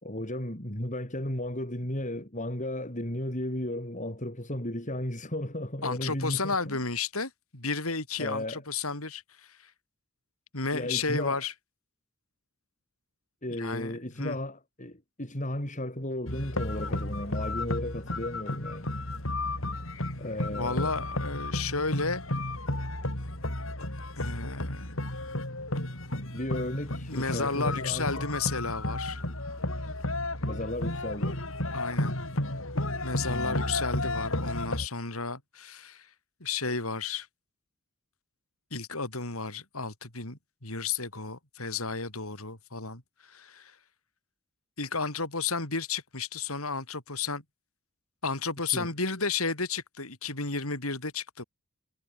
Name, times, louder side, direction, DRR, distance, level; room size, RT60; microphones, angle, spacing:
voice 1, 0.0-6.8 8.2-8.6 10.7-11.4 13.4-18.9 20.2-20.9 26.3-28.3 30.4-31.4 33.3-33.8 48.7-48.9, left 1 dB, 35° left, 6.3 m, -34 dB
voice 2, 5.8-9.7 10.5-11.5 13.6-14.4 20.5-22.2 24.1-25.0 27.1-29.2 31.7-32.2 33.0-36.1 36.4-37.3 38.7-43.7 44.8-47.4 48.2-51.4, left 4 dB, 85° left, 6.7 m, -33 dB
sound 1, 16.3-34.9, left 1 dB, 65° left, 6.6 m, -33 dB
head